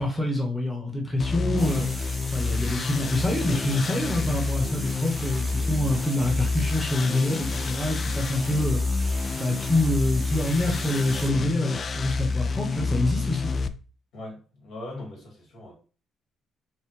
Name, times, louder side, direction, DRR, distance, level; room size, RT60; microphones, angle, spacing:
voice 1, 0.0-13.5, left 1 dB, 10° left, 1.0 m, -26 dB
sound 1, 1.2-13.7, left 4 dB, 45° left, 0.3 m, -28 dB
sound 2, 1.6-11.3, right 2 dB, 15° right, 0.6 m, -40 dB
voice 2, 14.1-15.7, left 1 dB, 70° left, 1.8 m, -40 dB
5.4 x 2.2 x 3.2 m
cardioid pair, 90°, 0 cm